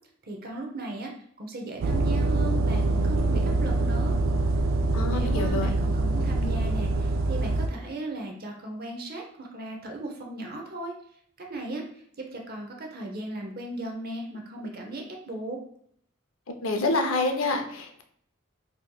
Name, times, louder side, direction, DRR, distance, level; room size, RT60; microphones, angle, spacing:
voice 1, 0.3-1.1 1.4-4.1 5.1-10.9 11.4-11.8 12.2-15.6, right 2 dB, 50° right, 2 dB, 0.7 m, -36 dB
sound 1, 1.8-7.7, right 2 dB, 70° right, 0.3 m, -25 dB
voice 2, 4.9-5.7 16.6-18.0, left 2 dB, 85° left, 5 dB, 0.6 m, -27 dB
4.1 x 2.9 x 2.3 m, 0.66 s
head